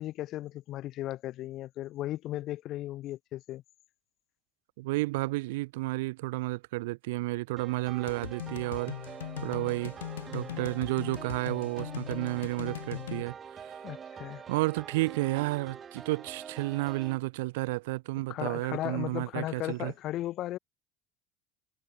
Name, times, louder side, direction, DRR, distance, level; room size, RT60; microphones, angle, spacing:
voice 1, 0.0-3.6 13.8-14.4 18.3-20.6, left 14 dB, 55° left, 1.3 m, -36 dB
voice 2, 4.8-9.1 9.4-9.9 10.3-13.3 13.6-13.8 14.5-19.9, right 21 dB, 70° right, 1.0 m, -31 dB
sound 1, 7.6-17.2, right 7 dB, 35° right, 2.0 m, -45 dB
sound 2, 8.1-13.2, left 12 dB, 80° left, 2.5 m, -40 dB
hypercardioid pair, 70°, 0 cm